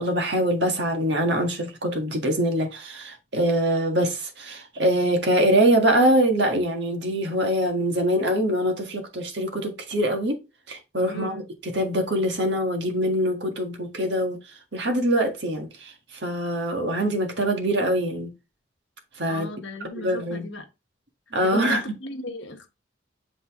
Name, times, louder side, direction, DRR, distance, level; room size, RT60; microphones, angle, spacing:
voice 1, 0.0-10.4 10.7-18.3 19.1-19.5 19.9-20.5 21.3-21.8, right 1 dB, 60° right, 1.6 m, -24 dB
voice 2, 11.1-11.4 19.3-20.7 21.4-22.7, left 2 dB, 70° left, 1.3 m, -36 dB
7.9 x 4.0 x 3.6 m
head